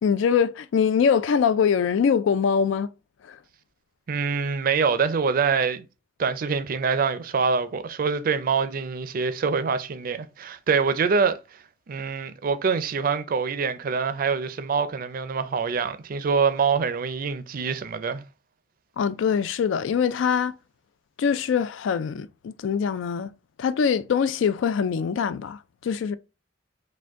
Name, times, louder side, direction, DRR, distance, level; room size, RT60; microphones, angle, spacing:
voice 1, 0.0-2.9 3.2-3.4 19.0-20.5 21.2-23.3 23.6-26.2, left 6 dB, 90° left, 0.3 m, -23 dB
voice 2, 4.1-5.8 6.2-11.4 11.9-18.2, right 5 dB, 50° right, 0.4 m, -25 dB
5.0 x 2.2 x 3.5 m
head